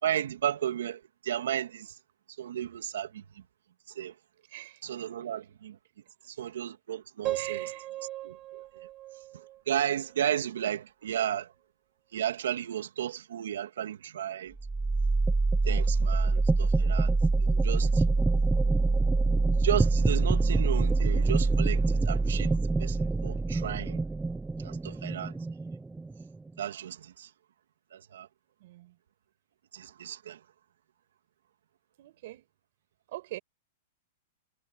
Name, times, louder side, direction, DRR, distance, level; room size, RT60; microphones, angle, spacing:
voice 1, 0.0-1.9 2.4-3.2 3.9-4.1 4.8-5.8 6.3-7.6 8.2-8.6 9.7-11.5 12.1-14.5 15.7-17.1 17.4-18.0 19.6-22.5 22.8-24.0 24.6-25.3 26.6-27.3 27.9-28.3 29.7-30.4, right 10 dB, 85° right, 2.8 m, -33 dB
voice 2, 4.5-4.8 5.2-5.3 7.3-7.9 28.6-29.0 32.0-32.5 33.1-33.4, right 17 dB, 50° right, 7.7 m, -43 dB
Piano, 7.2-10.3, right 15 dB, 25° right, 7.1 m, -38 dB
sound 1, 14.6-26.5, right 3 dB, 5° right, 0.4 m, -25 dB
supercardioid pair, 165°, 0 cm